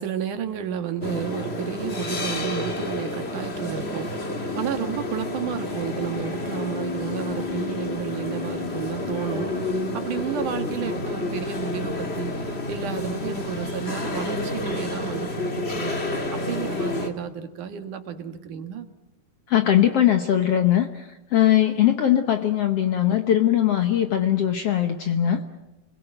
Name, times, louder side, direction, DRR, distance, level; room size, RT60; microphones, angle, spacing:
voice 1, 0.0-15.9 16.3-18.9, right 8 dB, 65° right, 7 dB, 3.1 m, -32 dB
sound 1, 1.0-17.1, left 2 dB, 25° left, 1.6 m, -29 dB
voice 2, 19.5-25.5, left 11 dB, 60° left, 7 dB, 1.7 m, -20 dB
29.0 x 21.5 x 9.0 m, 1.0 s
omnidirectional pair, 4.0 m